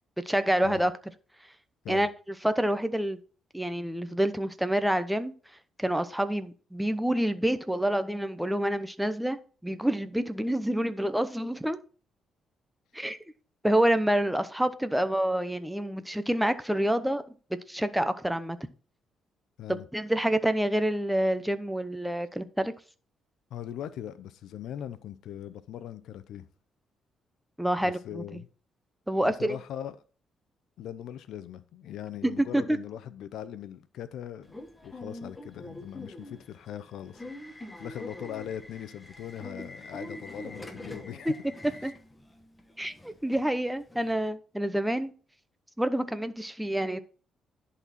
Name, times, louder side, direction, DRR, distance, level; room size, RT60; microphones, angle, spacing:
voice 1, 0.2-0.9 1.9-2.1 2.4-3.2 3.5-5.3 5.8-9.4 9.6-11.8 12.9-13.2 13.6-17.2 17.5-18.6 19.7-22.7 27.6-28.4 29.1-29.6 32.2-32.8 41.8-41.9 42.8-45.1 45.8-47.0, right 1 dB, 5° right, 0.8 m, -27 dB
voice 2, 23.5-26.5 27.8-28.5 29.1-30.0 30.8-41.3 41.7-41.8, left 10 dB, 80° left, 0.7 m, -40 dB
Subway metro underground / Alarm, 34.4-44.3, left 1 dB, 15° left, 1.3 m, -45 dB
11.0 x 4.2 x 4.3 m
cardioid pair, 90°, 0 cm